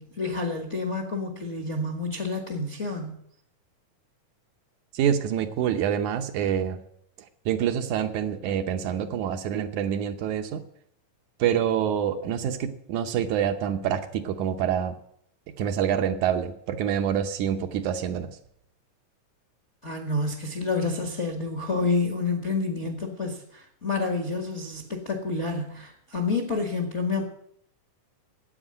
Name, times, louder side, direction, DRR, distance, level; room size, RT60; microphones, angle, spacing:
voice 1, 0.0-3.2 19.8-27.2, left 3 dB, 35° left, 3 dB, 1.1 m, -29 dB
voice 2, 4.9-6.8 7.5-10.6 11.4-14.9 15.6-18.3, right 9 dB, 75° right, 7 dB, 2.1 m, -26 dB
9.9 x 8.4 x 9.7 m, 0.70 s
omnidirectional pair, 3.7 m